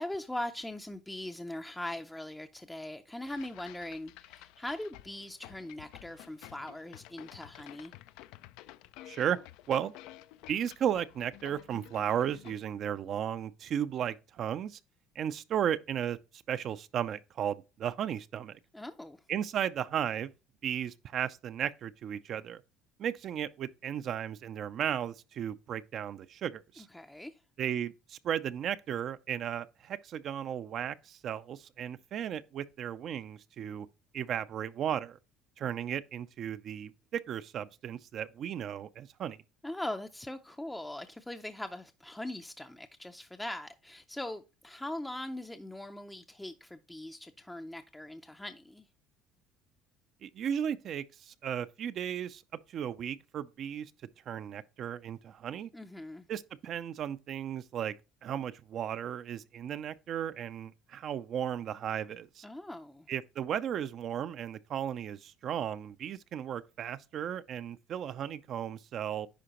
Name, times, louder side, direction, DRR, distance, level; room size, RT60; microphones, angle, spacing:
voice 1, 0.0-7.9 18.7-19.2 26.8-27.4 39.6-48.8 55.7-56.3 62.4-63.1, left 1 dB, 10° left, 0.4 m, -41 dB
sound 1, 3.2-12.6, left 15 dB, 75° left, 0.3 m, -52 dB
voice 2, 9.1-9.4 9.7-9.9 10.5-14.8 15.2-16.2 16.5-18.6 19.3-20.3 20.6-22.6 23.0-26.9 27.6-33.9 34.1-35.2 35.6-39.4 50.2-52.4 52.7-53.9 54.3-55.7 56.3-57.9 58.2-62.4 63.1-69.3, right 9 dB, 55° right, 0.4 m, -35 dB
10.0 x 3.7 x 2.9 m
supercardioid pair, 90°, 0 cm